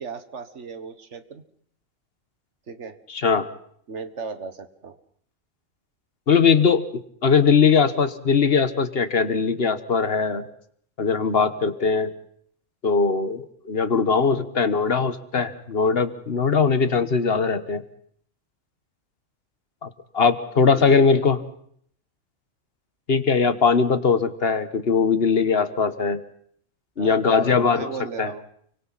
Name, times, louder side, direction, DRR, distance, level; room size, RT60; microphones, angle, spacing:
voice 1, 0.0-1.4 2.7-3.0 3.9-5.0 20.7-21.3 27.0-28.4, right 5 dB, 65° right, 10 dB, 1.7 m, -36 dB
voice 2, 3.1-3.5 6.3-6.8 7.2-10.4 11.0-12.1 12.8-17.8 19.8-19.9 20.1-21.4 23.1-26.2 27.0-27.9 28.2-28.3, left 5 dB, 50° left, 11 dB, 1.5 m, -20 dB
29.5 x 24.0 x 4.2 m, 0.63 s
omnidirectional pair, 1.3 m